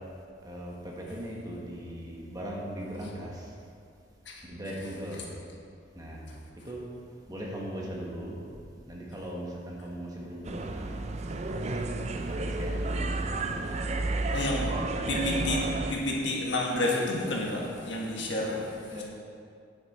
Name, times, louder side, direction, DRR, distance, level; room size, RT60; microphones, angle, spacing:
voice 1, 0.4-3.5 4.4-5.3 5.9-6.3 6.6-6.8 7.3-8.5 8.9-11.0 11.3-11.8 12.1-16.0 18.9-19.0, equal, 20° right, -3 dB, 1.3 m, -39 dB
sound 1, 10.4-15.9, right 2 dB, 35° right, 0.4 m, -31 dB
voice 2, 14.3-14.7 15.1-19.0, left 1 dB, 70° left, -2 dB, 1.5 m, -30 dB
9.5 x 7.8 x 4.2 m, 2.3 s
head